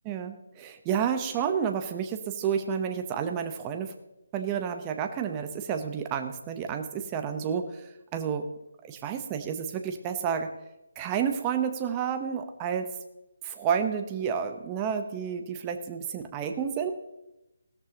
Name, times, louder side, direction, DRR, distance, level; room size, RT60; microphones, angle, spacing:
voice 1, 0.0-3.9 4.3-8.5 8.8-10.5 11.0-12.9 13.4-16.9, right 7 dB, 15° right, 6 dB, 0.9 m, -30 dB
16.5 x 13.5 x 3.0 m, 0.93 s
hypercardioid pair, 170°, 0 cm